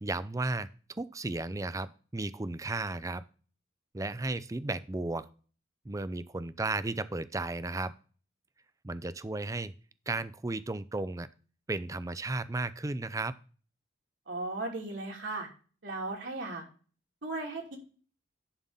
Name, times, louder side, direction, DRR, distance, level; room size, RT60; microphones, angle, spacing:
voice 1, 0.0-0.7 0.9-3.3 3.9-5.3 5.8-7.9 8.8-9.7 10.1-11.3 11.7-13.3, right 2 dB, 15° right, 15 dB, 0.4 m, -34 dB
voice 2, 14.3-15.5 15.8-16.6 17.2-17.8, right 2 dB, 75° right, -1 dB, 2.8 m, -36 dB
11.0 x 3.8 x 5.4 m, 0.38 s
head